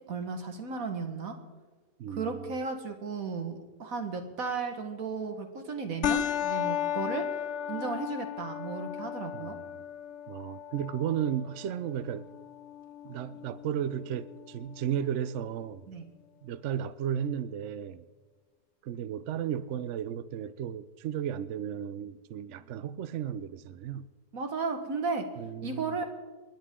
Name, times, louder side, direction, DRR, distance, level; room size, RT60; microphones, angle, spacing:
voice 1, 0.1-1.4 2.1-7.3 7.7-9.6 15.9-16.1 24.3-25.3 25.6-26.0, right 4 dB, 50° right, 1.8 m, -34 dB
voice 2, 2.0-2.5 9.3-9.8 10.3-12.3 13.0-15.9 16.4-18.1 18.8-24.1 25.4-26.0, right 9 dB, 80° right, 0.6 m, -34 dB
sound 1, 6.0-15.0, left 10 dB, 70° left, 0.6 m, -35 dB
29.0 x 10.5 x 3.7 m
omnidirectional pair, 1.9 m